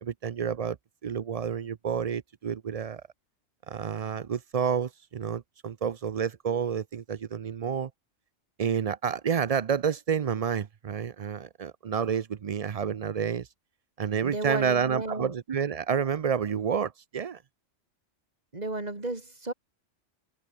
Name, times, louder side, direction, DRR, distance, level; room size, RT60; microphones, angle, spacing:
voice 1, 0.0-0.8 1.0-3.0 3.7-7.9 8.6-13.5 14.0-17.4, right 7 dB, 50° right, 0.4 m, -29 dB
voice 2, 14.2-15.3 18.5-19.5, right 2 dB, 35° right, 3.0 m, -33 dB
omnidirectional pair, 1.3 m